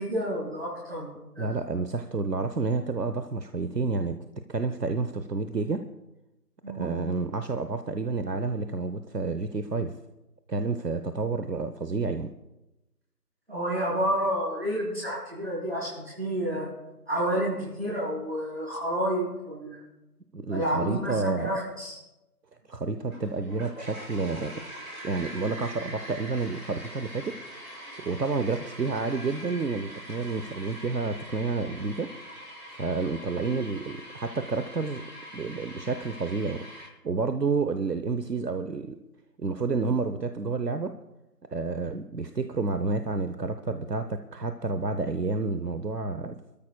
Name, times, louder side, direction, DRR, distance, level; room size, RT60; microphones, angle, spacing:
voice 1, 0.0-1.6 6.6-6.9 13.5-16.7 17.1-19.8 20.5-22.0, right 1 dB, 40° right, -6 dB, 4.3 m, -30 dB
voice 2, 1.4-4.2 4.5-5.9 6.7-9.9 10.5-12.3 20.3-21.5 22.7-24.5 25.0-32.1 32.7-35.0 35.3-36.7 37.0-39.0 39.4-40.9 41.5-46.4, right 4 dB, 80° right, 9 dB, 0.9 m, -30 dB
sound 1, 23.1-36.9, equal, 55° right, 5.9 m, -43 dB
25.5 x 13.5 x 2.3 m, 0.97 s
figure-of-eight pair, 175°, 48 cm